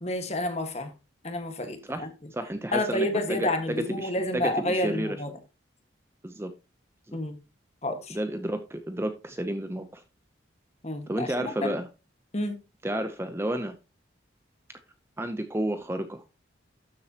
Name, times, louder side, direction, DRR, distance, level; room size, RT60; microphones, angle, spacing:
voice 1, 0.0-0.9 1.2-2.1 2.7-5.3 7.1-7.4 7.8-8.2 10.8-11.7 12.3-12.6, left 1 dB, 35° left, 1.6 m, -29 dB
voice 2, 2.3-5.2 6.2-6.5 7.1-7.2 8.1-10.0 11.1-11.9 12.8-13.8 15.2-16.2, right 1 dB, 15° right, 0.6 m, -31 dB
12.5 x 7.5 x 2.9 m
head